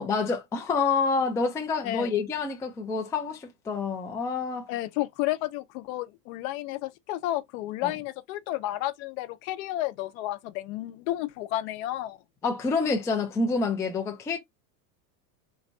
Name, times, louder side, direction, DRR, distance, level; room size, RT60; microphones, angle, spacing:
voice 1, 0.0-4.7 7.8-7.9 12.4-14.4, left 4 dB, 5° left, 0.4 m, -27 dB
voice 2, 4.7-12.2, left 15 dB, 60° left, 0.7 m, -32 dB
3.3 x 3.2 x 2.6 m
supercardioid pair, 125°, 47 cm